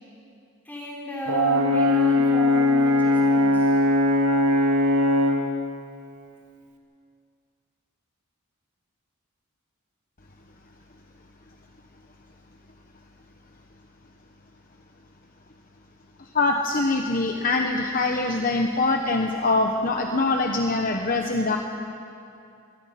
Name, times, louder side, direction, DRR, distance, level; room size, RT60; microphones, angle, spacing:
voice 1, 0.6-3.8, equal, 10° left, -5 dB, 5.4 m, -33 dB
Brass instrument, 1.3-5.5, left 1 dB, 85° right, 2.0 m, -20 dB
voice 2, 16.2-21.6, left 3 dB, 40° left, 3 dB, 1.1 m, -23 dB
25.5 x 19.0 x 5.9 m, 2.5 s
head